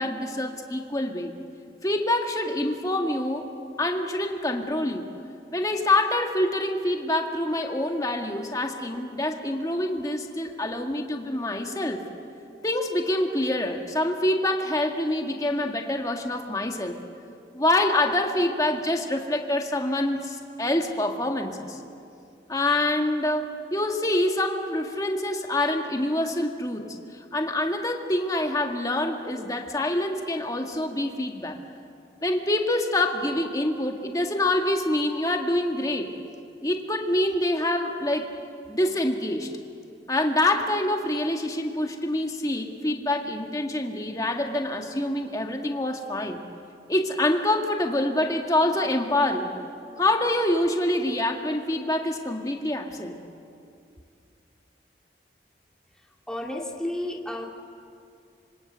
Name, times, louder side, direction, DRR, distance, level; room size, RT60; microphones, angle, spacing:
voice 1, 0.0-1.3 1.8-3.5 3.8-5.1 5.5-12.0 12.6-17.0 17.5-21.8 22.5-27.0 27.3-31.6 32.2-36.1 36.6-38.3 38.7-39.5 40.1-46.4 46.9-49.5 50.0-53.2, left 1 dB, 20° left, 3 dB, 2.0 m, -26 dB
voice 2, 56.3-57.5, left 1 dB, 5° left, 0 dB, 2.3 m, -31 dB
26.5 x 25.5 x 8.2 m, 2.4 s
head